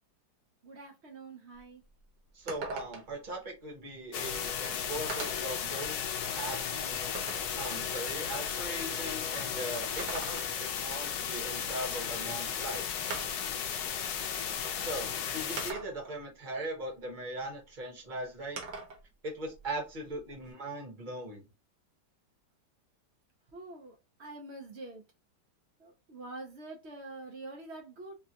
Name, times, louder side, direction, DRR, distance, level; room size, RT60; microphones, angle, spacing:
voice 1, 0.6-1.8 23.5-25.0 25.8-28.1, right 2 dB, 75° right, 0.6 m, -46 dB
sound 1, 1.5-1.6 2.0-2.1 2.5-3.2 4.3-4.4 5.1-5.6 6.1-7.6 9.8-10.8 12.2-12.3 13.1-13.6 14.6-14.7 15.6-16.2 18.6-19.0 19.4-20.5, right 4 dB, 55° right, 1.2 m, -42 dB
voice 2, 2.3-6.0 6.3-7.1 7.6-12.8 14.8-18.6 19.2-21.5, right 1 dB, 35° right, 0.9 m, -39 dB
sound 2, 4.1-15.7, left 8 dB, 70° left, 1.0 m, -35 dB
3.7 x 2.2 x 2.7 m
omnidirectional pair, 2.1 m